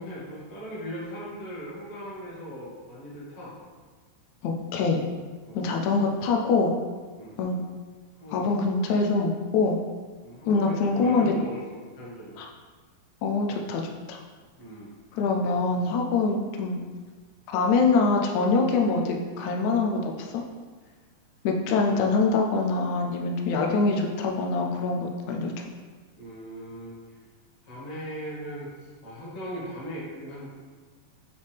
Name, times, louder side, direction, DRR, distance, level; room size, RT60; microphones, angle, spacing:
voice 1, 0.0-3.5 5.4-5.8 7.2-7.4 8.1-8.5 10.2-11.6 11.9-12.4 14.6-14.9 26.2-27.0 27.6-30.5, equal, 25° left, -7 dB, 0.8 m, -39 dB
voice 2, 4.4-5.0 5.6-6.7 7.4-7.6 8.3-9.8 10.5-11.3 12.4-12.5 13.2-14.2 15.1-16.8 17.5-20.4 21.4-25.5, left 4 dB, 75° left, 1 dB, 1.8 m, -24 dB
6.6 x 5.2 x 3.4 m, 1.4 s
omnidirectional pair, 3.9 m